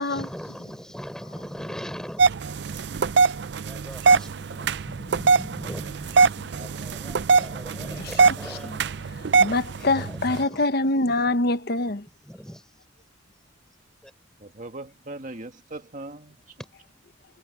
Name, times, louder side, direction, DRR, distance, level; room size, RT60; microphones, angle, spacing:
voice 1, 0.0-2.4 3.6-8.8 9.7-10.6 11.2-11.5 12.2-12.7 14.0-14.1 16.6-16.7, equal, 5° left, 4.2 m, -40 dB
sound 1, 2.2-10.4, right 4 dB, 60° right, 0.5 m, -22 dB
voice 2, 9.2-12.0, left 2 dB, 55° left, 1.1 m, -24 dB
voice 3, 14.4-16.6, right 2 dB, 45° right, 2.0 m, -39 dB
head